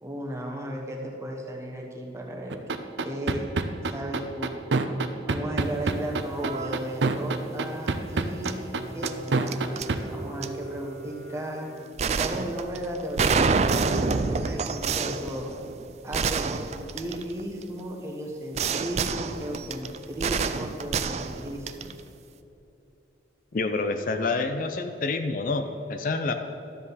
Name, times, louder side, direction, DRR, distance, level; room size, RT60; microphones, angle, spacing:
voice 1, 0.0-3.4 3.9-4.5 5.3-11.7 12.2-15.5 16.0-21.9, right 1 dB, 15° right, 0 dB, 1.2 m, -35 dB
sound 1, 2.5-10.0, right 3 dB, 85° right, 0.6 m, -25 dB
sound 2, 5.8-6.0 6.3-6.7 8.4-8.5 9.0-9.9 10.4-10.5 12.0-17.6 18.5-22.0, right 5 dB, 40° right, 0.3 m, -27 dB
Bowed string instrument, 8.1-12.4, right 2 dB, 80° left, 2.2 m, -42 dB
voice 2, 23.5-26.3, left 3 dB, 50° left, 7 dB, 0.5 m, -28 dB
12.5 x 7.6 x 4.1 m, 3.0 s
head